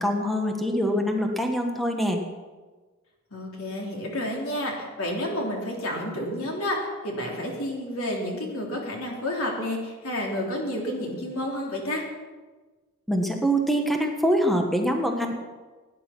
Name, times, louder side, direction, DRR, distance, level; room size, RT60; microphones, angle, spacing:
voice 1, 0.0-2.2 13.1-15.4, equal, ahead, 3 dB, 1.3 m, -24 dB
voice 2, 3.3-12.0, left 1 dB, 80° left, -1 dB, 3.6 m, -30 dB
17.0 x 10.5 x 6.1 m, 1.3 s
head